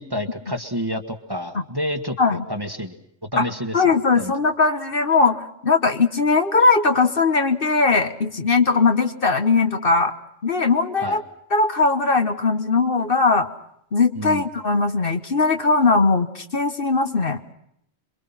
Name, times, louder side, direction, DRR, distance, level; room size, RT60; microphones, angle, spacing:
voice 1, 0.0-2.9 3.3-3.8 4.2-4.3 11.0-11.2 14.2-14.4, equal, 20° right, 7 dB, 1.5 m, -29 dB
voice 2, 3.7-10.1 10.4-11.2 11.5-13.5 13.9-17.4, left 4 dB, 50° left, 8 dB, 1.4 m, -19 dB
27.5 x 23.0 x 5.6 m, 0.73 s
omnidirectional pair, 1.2 m